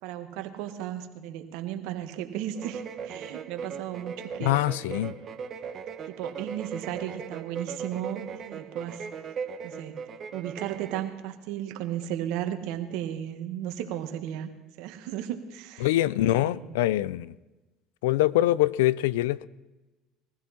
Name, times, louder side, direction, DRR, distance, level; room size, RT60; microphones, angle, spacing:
voice 1, 0.0-5.1 6.1-9.1 9.6-10.0 10.3-14.5 14.8-15.9 16.2-16.7, right 11 dB, 70° right, 7 dB, 1.7 m, -35 dB
sound 1, 2.5-11.1, right 6 dB, 45° right, 1.5 m, -38 dB
voice 2, 4.4-5.1 15.8-17.3 18.0-19.4, left 15 dB, 85° left, 20 dB, 0.5 m, -24 dB
22.0 x 15.0 x 4.3 m, 1.1 s
supercardioid pair, 90°, 0 cm